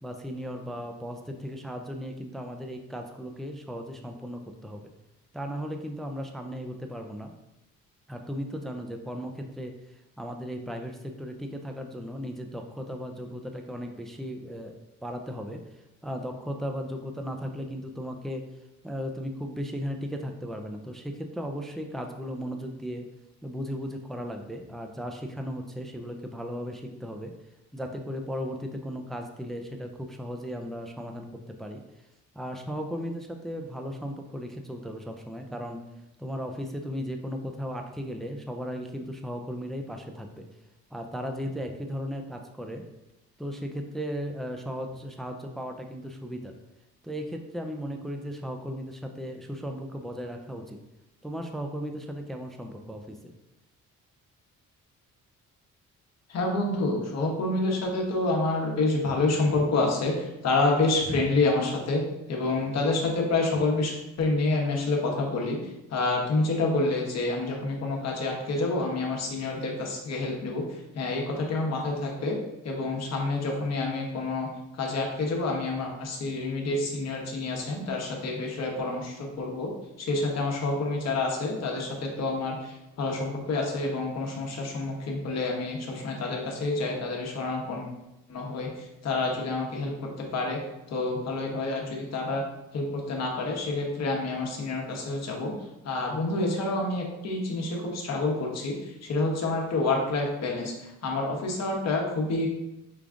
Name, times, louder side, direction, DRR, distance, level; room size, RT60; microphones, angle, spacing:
voice 1, 0.0-4.9 5.3-7.3 8.1-15.6 16.0-18.4 18.8-23.0 23.4-27.3 27.7-31.8 32.3-35.8 36.2-40.5 40.9-42.8 43.4-46.5 47.0-50.8 51.2-53.3, equal, ahead, 4 dB, 0.4 m, -36 dB
voice 2, 56.3-62.0 62.3-65.6 65.9-70.6 70.9-72.4 72.6-74.5 74.7-79.7 80.0-87.9 88.3-90.6 90.9-92.4 92.7-95.5 95.8-102.5, left 2 dB, 60° left, 0 dB, 1.2 m, -28 dB
5.2 x 2.4 x 3.7 m, 0.92 s
cardioid pair, 90°, 30 cm